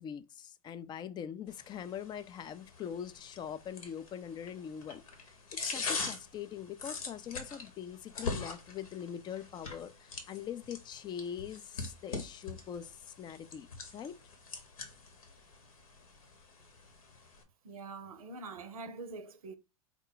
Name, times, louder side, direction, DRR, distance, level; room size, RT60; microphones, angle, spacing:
voice 1, 0.0-5.0 5.5-14.2, left 8 dB, 25° left, 0.4 m, -43 dB
sound 1, 1.5-17.4, left 4 dB, 75° left, 1.1 m, -43 dB
voice 2, 17.6-19.6, right 3 dB, 80° right, 0.6 m, -44 dB
4.7 x 2.2 x 3.8 m
hypercardioid pair, 95°, 18 cm